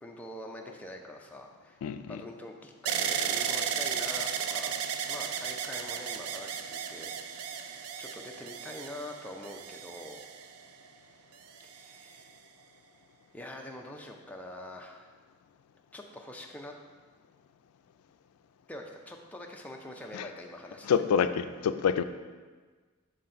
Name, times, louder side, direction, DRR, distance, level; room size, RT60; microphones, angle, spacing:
voice 1, 0.0-1.8 2.1-4.7 5.1-10.2 11.6-12.3 13.3-15.1 15.9-16.7 18.7-20.9, left 1 dB, 5° left, 1 dB, 0.4 m, -44 dB
voice 2, 1.8-2.2 20.1-20.3 20.8-22.0, left 7 dB, 90° left, 11 dB, 0.3 m, -27 dB
sound 1, 2.9-10.9 11.6-12.2, right 7 dB, 80° right, 0.4 m, -34 dB
5.6 x 3.9 x 4.3 m, 1.4 s
head